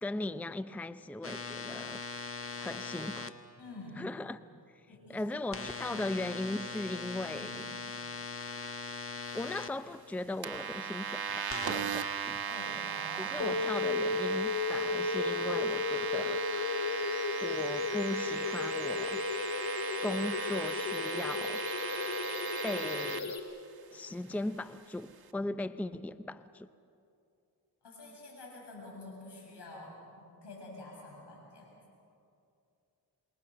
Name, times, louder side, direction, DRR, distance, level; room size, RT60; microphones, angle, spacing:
voice 1, 0.0-2.0 2.6-3.4 4.0-4.4 4.7-7.7 9.3-12.4 13.2-16.4 17.4-19.2 20.0-21.6 22.6-23.4 23.9-26.7, left 2 dB, 5° left, 0.6 m, -38 dB
sound 1, 1.2-3.3 5.5-9.7 11.5-11.7, left 4 dB, 30° left, 1.5 m, -40 dB
voice 2, 3.6-4.1 4.9-5.3 7.3-7.5 12.5-13.6 27.8-31.7, left 2 dB, 85° left, 7.9 m, -48 dB
sound 2, 10.4-23.2, right 7 dB, 60° right, 1.4 m, -37 dB
sound 3, 13.4-23.4, left 4 dB, 65° left, 2.4 m, -34 dB
28.0 x 22.0 x 6.8 m
cardioid pair, 60°, 40 cm